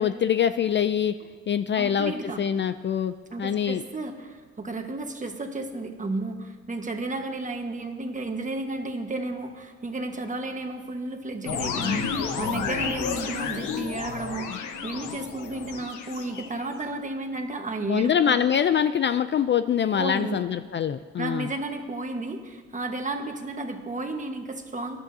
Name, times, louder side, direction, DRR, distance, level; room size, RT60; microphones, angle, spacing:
voice 1, 0.0-1.1 1.5-2.1 2.4-3.1 3.4-3.8 17.9-21.5, left 8 dB, 40° left, 11 dB, 0.4 m, -24 dB
voice 2, 1.7-2.4 3.3-18.4 19.9-20.4 21.2-25.0, right 2 dB, 25° right, 4 dB, 1.4 m, -33 dB
sound 1, 11.5-16.9, left 6 dB, 85° left, 1.2 m, -31 dB
20.5 x 11.5 x 2.8 m, 1.5 s
cardioid pair, 90°, 30 cm